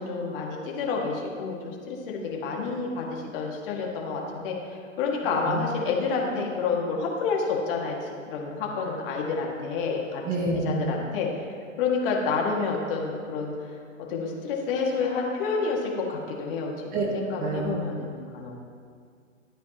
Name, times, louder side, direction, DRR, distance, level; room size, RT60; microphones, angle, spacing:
voice 1, 0.0-4.6 5.0-10.3 10.6-11.3 11.8-13.7 14.1-18.5, left 4 dB, 45° left, -1 dB, 2.1 m, -29 dB
voice 2, 5.3-5.7 10.2-10.9 16.9-17.0 17.4-17.8, right 2 dB, 20° right, -2 dB, 1.3 m, -28 dB
12.5 x 9.0 x 3.0 m, 2.1 s
hypercardioid pair, 125°, 40 cm